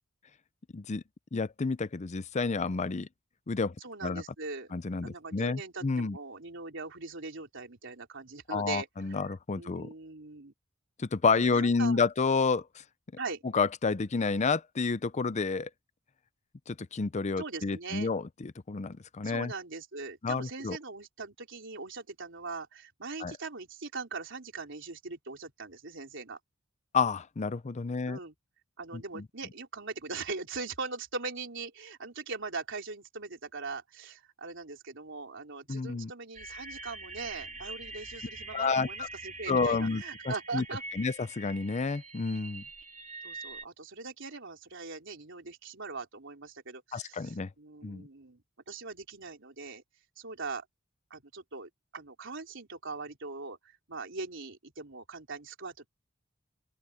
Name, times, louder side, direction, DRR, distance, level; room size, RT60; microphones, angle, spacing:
voice 1, 1.3-3.1 3.5-3.7 4.0-4.2 4.7-6.2 8.5-9.9 11.0-12.7 13.5-15.7 16.7-19.5 20.2-20.8 23.2-23.3 26.9-28.2 28.9-29.2 35.7-36.1 38.5-39.1 39.5-40.6 40.9-42.6 46.9-47.5 47.8-48.0, left 4 dB, 35° left, 0.5 m, -30 dB
voice 2, 3.8-4.7 5.0-9.3 9.5-10.5 11.3-12.0 13.2-13.4 17.4-18.1 19.2-26.4 28.1-28.3 28.8-40.8 43.2-48.4 48.7-49.8 50.2-50.7 51.1-55.9, right 4 dB, 65° right, 3.8 m, -41 dB
sound 1, 36.3-43.6, right 3 dB, 35° right, 3.2 m, -44 dB
open air
head